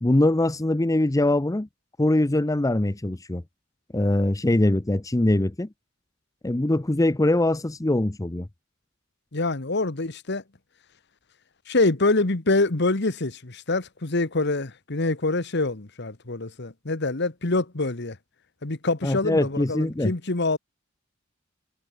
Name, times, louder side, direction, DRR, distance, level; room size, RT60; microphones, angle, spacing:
voice 1, 0.0-1.7 2.0-3.4 3.9-5.7 6.4-8.5 19.0-20.1, left 1 dB, 15° left, 0.6 m, -22 dB
voice 2, 9.3-10.4 11.7-18.2 18.6-20.6, left 2 dB, 60° left, 1.5 m, -25 dB
head